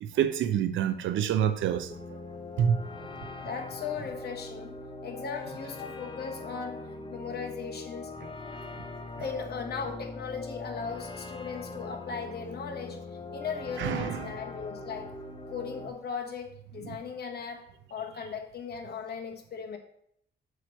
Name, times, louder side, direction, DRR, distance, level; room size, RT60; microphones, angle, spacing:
voice 1, 0.0-1.9 2.6-2.8 13.8-14.3 16.8-17.0, right 9 dB, 75° right, 0.6 m, -27 dB
sound 1, 1.9-15.9, left 3 dB, 25° left, 0.7 m, -42 dB
voice 2, 3.4-4.7 5.0-6.8 7.1-8.1 9.2-13.0 13.3-15.1 15.5-17.6 17.9-19.8, left 6 dB, 55° left, 1.3 m, -37 dB
7.6 x 3.1 x 6.3 m
cardioid pair, 90°, 20 cm